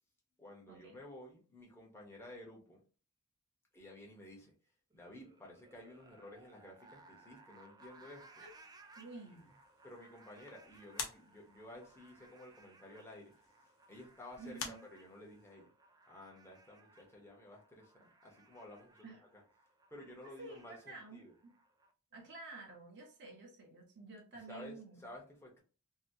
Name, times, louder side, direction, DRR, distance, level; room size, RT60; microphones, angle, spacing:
voice 1, 0.4-2.8 3.7-4.5 4.9-8.4 9.2-9.4 9.8-13.3 13.9-15.7 16.0-19.1 19.3-19.4 19.9-21.3 24.5-25.6, left 1 dB, 10° left, 1.0 m, -53 dB
sound 1, 4.9-21.9, right 3 dB, 20° right, 0.4 m, -63 dB
sound 2, 8.3-15.5, left 5 dB, 65° left, 0.8 m, -51 dB
voice 2, 9.0-9.5 14.4-14.8 19.0-19.2 20.4-21.5 22.1-25.0, right 3 dB, 55° right, 0.9 m, -51 dB
2.8 x 2.8 x 2.8 m
head